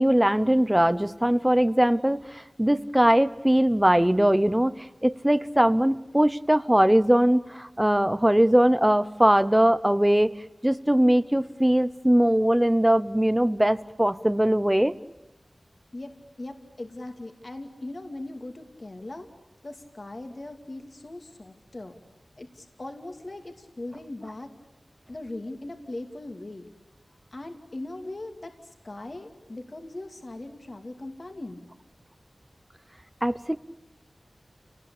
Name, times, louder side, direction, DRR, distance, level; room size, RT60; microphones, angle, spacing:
voice 1, 0.0-4.8 5.0-10.3 10.6-14.9 33.2-33.6, right 1 dB, 10° right, 13 dB, 0.9 m, -21 dB
voice 2, 15.9-19.3 19.6-22.0 22.4-24.7 25.1-26.7 27.3-31.6, left 2 dB, 45° left, 5 dB, 2.5 m, -39 dB
29.5 x 19.0 x 8.6 m, 1.1 s
wide cardioid pair, 70°, 0 cm